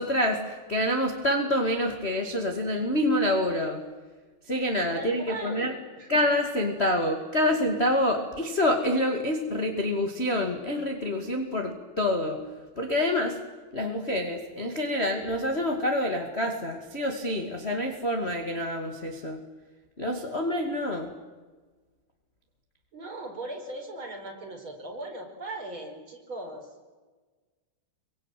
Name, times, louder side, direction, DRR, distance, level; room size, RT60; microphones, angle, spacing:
voice 1, 0.0-3.8 4.5-5.7 6.1-12.4 12.7-13.4 13.7-19.4 20.0-21.1, left 1 dB, 25° left, 2 dB, 1.6 m, -27 dB
voice 2, 4.9-6.1 22.9-26.7, right 2 dB, 30° right, 2 dB, 5.3 m, -39 dB
27.0 x 24.0 x 9.2 m, 1.3 s
omnidirectional pair, 4.8 m